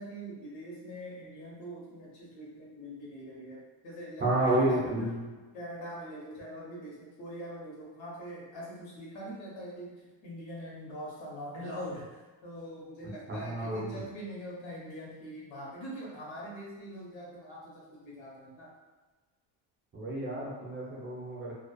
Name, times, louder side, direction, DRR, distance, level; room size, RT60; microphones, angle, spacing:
voice 1, 0.0-4.9 5.5-18.7, equal, 75° left, -4 dB, 1.0 m, -43 dB
voice 2, 4.2-5.3 13.3-14.0 19.9-21.5, right 1 dB, 25° right, -6 dB, 0.6 m, -30 dB
2.4 x 2.3 x 2.3 m, 1.2 s
cardioid pair, 135°, 46 cm